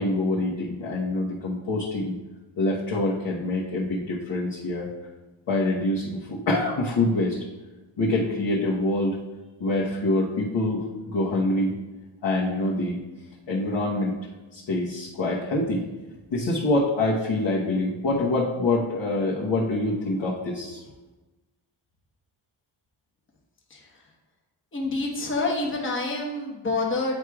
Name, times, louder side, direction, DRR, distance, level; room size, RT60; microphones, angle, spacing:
voice 1, 0.0-2.2 2.6-4.9 5.5-7.4 8.0-9.2 9.6-11.7 12.2-13.0 13.5-14.2 14.5-15.8 16.3-20.8, left 2 dB, 65° left, -7 dB, 1.2 m, -25 dB
voice 2, 23.7-24.0 24.7-27.2, left 2 dB, 25° left, -1 dB, 1.1 m, -27 dB
9.1 x 4.7 x 2.4 m, 1.1 s
wide cardioid pair, 135°, 45 cm